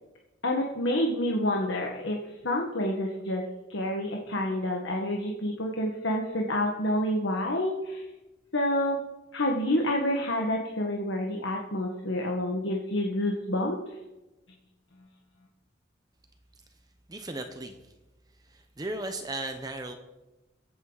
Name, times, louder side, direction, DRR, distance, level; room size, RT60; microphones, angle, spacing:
voice 1, 0.4-8.0 8.5-9.0 9.3-13.8, left 1 dB, 80° left, 0 dB, 1.6 m, -28 dB
voice 2, 17.1-17.8 18.4-19.9, right 2 dB, 20° right, 6 dB, 0.8 m, -36 dB
22.5 x 8.6 x 4.0 m, 1.0 s
head